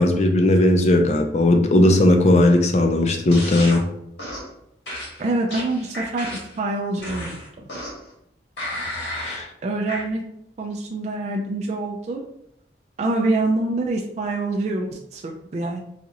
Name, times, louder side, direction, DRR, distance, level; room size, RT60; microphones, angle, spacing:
voice 1, 0.0-3.8 9.2-9.5, left 1 dB, 40° left, 4 dB, 0.4 m, -17 dB
sound 1, 3.3-3.8 4.2-4.5 4.9-6.6 7.0-8.1 8.6-9.4 9.9-10.0, left 1 dB, 75° left, 1.3 m, -32 dB
voice 2, 5.2-7.4 9.6-10.2 10.6-12.2 13.0-15.8, right 2 dB, 40° right, 0 dB, 0.3 m, -25 dB
4.1 x 2.4 x 2.8 m, 0.77 s
head